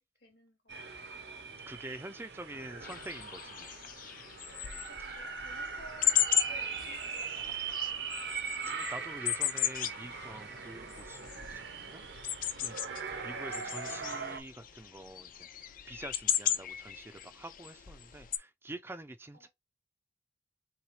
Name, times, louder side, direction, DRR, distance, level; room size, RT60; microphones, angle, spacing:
voice 1, 0.2-0.7 4.9-7.5 19.3-19.5, right 1 dB, 75° left, 2.4 m, -56 dB
sound 1, 0.7-14.4, right 6 dB, 70° right, 0.7 m, -40 dB
voice 2, 1.7-3.7 8.7-12.0 12.6-15.5 15.9-19.5, right 2 dB, 15° right, 0.4 m, -46 dB
sound 2, 2.8-18.4, left 10 dB, 50° left, 0.5 m, -36 dB
5.7 x 2.3 x 3.1 m
head